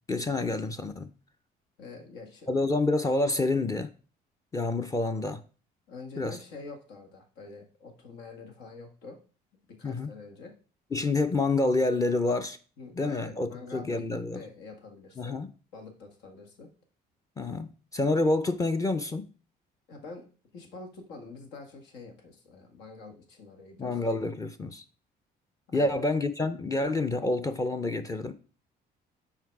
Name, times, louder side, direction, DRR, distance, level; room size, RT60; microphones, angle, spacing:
voice 1, 0.1-1.1 2.5-3.9 4.5-5.4 6.2-6.4 9.8-10.1 10.9-12.6 13.0-14.4 15.2-15.5 17.4-19.3 23.8-24.8 25.7-28.3, left 2 dB, 20° left, 0.6 m, -28 dB
voice 2, 1.8-2.5 5.9-9.2 9.7-10.5 12.8-15.4 15.7-16.7 19.9-20.3 20.5-24.0 25.7-26.0, left 3 dB, 85° left, 1.8 m, -46 dB
5.8 x 4.7 x 4.7 m
cardioid pair, 110°, 17 cm